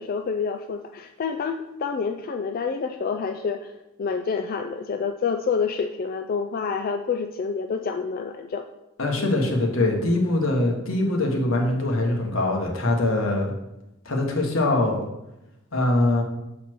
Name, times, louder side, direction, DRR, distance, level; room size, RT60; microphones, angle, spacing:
voice 1, 0.0-3.7 4.0-8.7 9.0-9.3, left 5 dB, 45° left, 6 dB, 0.3 m, -28 dB
voice 2, 9.0-13.5 14.0-15.0 15.7-16.2, left 2 dB, 80° left, 1 dB, 1.4 m, -23 dB
7.5 x 4.2 x 4.5 m, 0.92 s
head